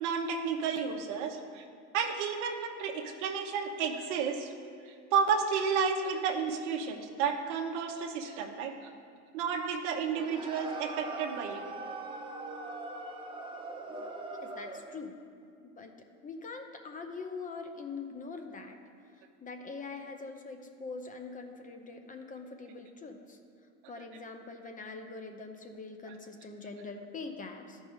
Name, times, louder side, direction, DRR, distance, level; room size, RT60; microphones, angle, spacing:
voice 1, 0.0-1.6 1.9-4.5 4.9-8.9 9.3-11.6, right 6 dB, 75° right, 4 dB, 1.0 m, -32 dB
sound 1, 10.1-14.9, right 2 dB, 15° right, 1.0 m, -41 dB
voice 2, 14.4-15.1 15.6-15.9 16.2-18.8 19.4-23.4 23.9-27.8, left 4 dB, 20° left, 5 dB, 0.7 m, -43 dB
13.0 x 5.2 x 3.6 m, 2.2 s
supercardioid pair, 100°, 35 cm